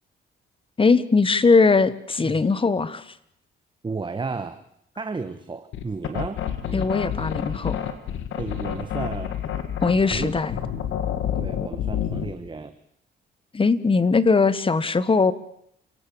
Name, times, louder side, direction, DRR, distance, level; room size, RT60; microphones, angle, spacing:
voice 1, 0.8-3.0 6.7-7.8 9.8-10.6 13.5-15.3, left 4 dB, 25° left, 16 dB, 1.4 m, -20 dB
voice 2, 3.8-4.6 5.0-6.4 8.4-9.4 10.0-10.3 11.3-12.7, right 4 dB, 25° right, 10 dB, 1.4 m, -33 dB
sound 1, 5.7-12.4, left 9 dB, 80° left, 2.7 m, -28 dB
29.0 x 17.5 x 7.2 m, 0.72 s
cardioid pair, 90°, 20 cm